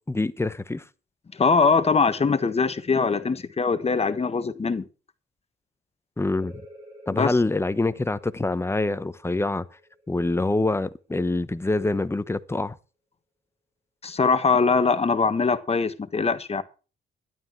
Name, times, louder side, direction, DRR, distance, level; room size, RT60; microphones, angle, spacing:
voice 1, 0.1-0.8 6.2-6.6 7.1-9.6 10.1-12.8, left 2 dB, 15° left, 1.0 m, -25 dB
voice 2, 1.4-4.8 7.1-7.3 14.0-16.6, left 4 dB, 30° left, 1.4 m, -22 dB
sound 1, 6.2-11.6, equal, 25° right, 7.6 m, -50 dB
12.5 x 11.5 x 4.6 m
cardioid pair, 90°, 20 cm